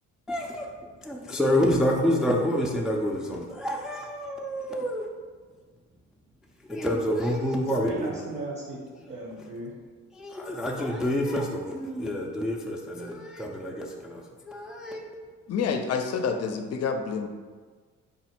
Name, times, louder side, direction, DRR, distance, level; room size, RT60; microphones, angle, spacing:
voice 1, 0.3-0.7 1.0-5.1 6.6-8.2 10.1-15.2, equal, ahead, -1 dB, 0.3 m, -28 dB
voice 2, 7.7-9.8, right 2 dB, 40° right, -3 dB, 0.7 m, -36 dB
voice 3, 15.5-17.3, left 5 dB, 55° left, 6 dB, 0.5 m, -28 dB
3.7 x 2.0 x 4.3 m, 1.5 s
cardioid pair, 90°, 30 cm